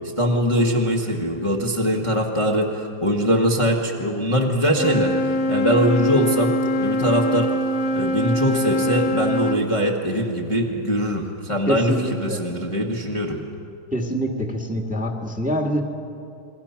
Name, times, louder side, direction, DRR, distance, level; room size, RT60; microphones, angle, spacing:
voice 1, 0.2-7.5 7.9-13.4, equal, 15° left, 0 dB, 1.3 m, -22 dB
Wind instrument woodwind instrument, 4.7-9.6, left 1 dB, 50° left, 0.9 m, -23 dB
voice 2, 11.7-12.4 13.9-15.8, equal, 5° right, 2 dB, 1.6 m, -25 dB
29.0 x 22.0 x 5.9 m, 2.6 s
omnidirectional pair, 2.3 m